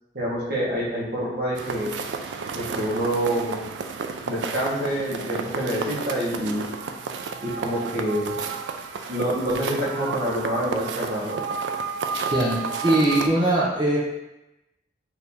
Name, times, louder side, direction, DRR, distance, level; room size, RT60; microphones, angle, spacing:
voice 1, 0.1-1.9 2.5-3.6 4.2-6.6 7.4-8.3 9.1-11.4, right 1 dB, 55° right, -5 dB, 1.2 m, -26 dB
sound 1, 1.5-13.3, right 5 dB, 80° right, 0.4 m, -32 dB
voice 2, 12.3-14.0, right 1 dB, 25° right, -6 dB, 0.6 m, -21 dB
4.3 x 2.7 x 3.5 m, 0.95 s
head